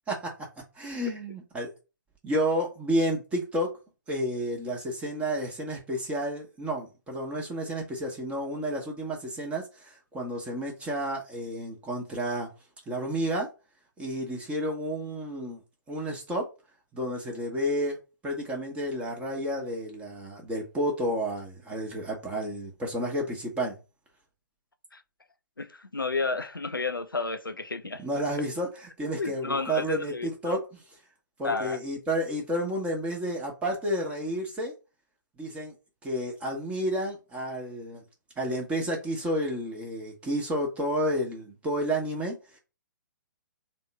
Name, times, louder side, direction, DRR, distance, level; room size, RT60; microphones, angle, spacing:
voice 1, 0.1-0.5 0.7-1.7 2.2-3.7 4.1-12.5 12.9-13.5 14.0-15.6 15.9-16.5 16.9-18.0 18.2-23.8 28.0-30.6 31.4-34.7 35.4-35.7 36.0-38.0 38.4-42.6, equal, 10° right, 0.9 m, -31 dB
voice 2, 25.6-28.0 29.2-30.6 31.4-31.8, left 3 dB, 90° left, 0.4 m, -31 dB
3.6 x 2.2 x 4.2 m
figure-of-eight pair, 120°, 11 cm